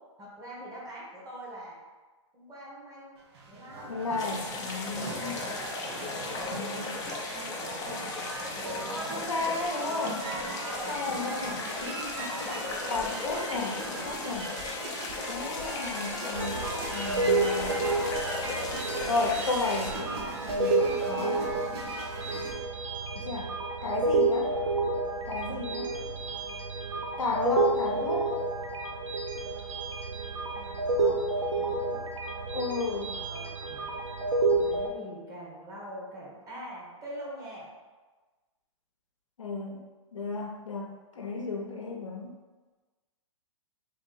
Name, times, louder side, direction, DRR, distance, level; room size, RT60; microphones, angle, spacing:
voice 1, 0.2-1.8 2.3-3.1 3.5-3.9 5.3-6.9 7.5-8.3 8.7-9.9 10.7-11.0 12.2-12.5 15.3-15.9 24.4-24.6 25.8-26.1 30.5-32.0 33.0-33.9 34.6-37.7, equal, 20° right, -4 dB, 1.2 m, -45 dB
sound 1, 3.2-22.5, right 2 dB, 55° right, 0.9 m, -39 dB
voice 2, 3.9-5.4 6.5-7.0 9.1-10.3 10.9-12.6 12.9-14.5 15.3-16.6 16.9-17.8 19.1-20.2 20.4-21.5 23.1-23.5 23.8-24.5 25.3-26.0 27.2-28.3 32.5-33.1 39.4-39.8 40.1-42.3, left 3 dB, 90° left, 0 dB, 0.7 m, -33 dB
sound 2, 4.2-19.9, left 3 dB, 20° left, 0.5 m, -37 dB
sound 3, 16.3-34.9, right 2 dB, 85° right, 0.6 m, -30 dB
3.0 x 2.7 x 3.9 m, 1.3 s
hypercardioid pair, 120°, 16 cm